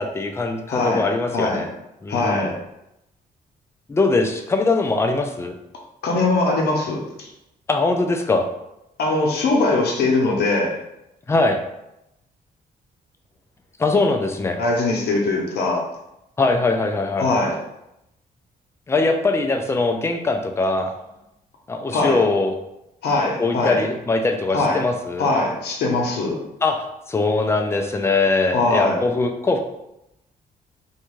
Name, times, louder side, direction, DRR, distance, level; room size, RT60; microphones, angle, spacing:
voice 1, 0.0-1.7 2.0-2.6 3.9-5.6 7.7-8.5 11.3-11.6 13.8-14.6 16.4-17.3 18.9-21.0 21.7-22.6 23.4-25.3 26.6-29.6, left 3 dB, 15° left, 5 dB, 0.3 m, -21 dB
voice 2, 0.7-1.1 1.3-1.6 2.1-2.5 6.0-7.3 9.0-10.8 14.6-15.9 17.2-17.6 21.9-22.2 23.0-23.8 24.5-24.8 25.2-26.4 28.5-29.0, left 2 dB, 80° left, -1 dB, 0.7 m, -21 dB
2.5 x 2.2 x 3.0 m, 0.87 s
cardioid pair, 110°, 16 cm